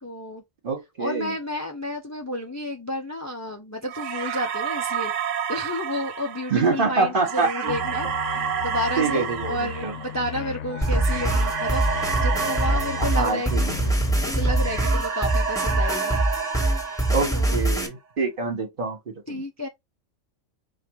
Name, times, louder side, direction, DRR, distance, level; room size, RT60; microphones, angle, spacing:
voice 1, 0.0-0.4 1.0-5.1 5.5-11.9 12.2-13.8 14.2-16.2 17.3-17.6 19.3-19.7, left 1 dB, 25° left, 0.3 m, -31 dB
voice 2, 0.6-1.3 6.5-7.7 9.0-9.9 13.0-13.6 17.1-19.0 19.3-19.4, right 4 dB, 45° right, 1.5 m, -25 dB
sound 1, 3.9-14.1 14.4-17.8, right 6 dB, 70° right, 1.1 m, -30 dB
sound 2, 7.7-13.2 13.5-14.8, left 8 dB, 70° left, 0.9 m, -36 dB
sound 3, 10.8-17.9, right 1 dB, 5° left, 1.2 m, -24 dB
5.0 x 2.6 x 3.1 m
omnidirectional pair, 1.3 m